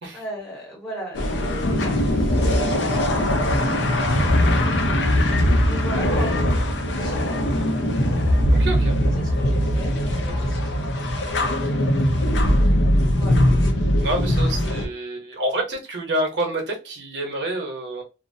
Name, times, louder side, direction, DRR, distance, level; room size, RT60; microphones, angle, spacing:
voice 1, 0.1-3.1 5.7-6.3 6.9-7.7 9.2-11.3 11.7-11.8 13.1-13.4, right 1 dB, 5° left, -4 dB, 1.0 m, -38 dB
sound 1, 1.1-14.9, left 1 dB, 90° left, 0.5 m, -20 dB
voice 2, 8.5-9.0 14.0-18.0, right 1 dB, 75° right, 1 dB, 0.9 m, -27 dB
2.5 x 2.0 x 2.6 m, 0.29 s
head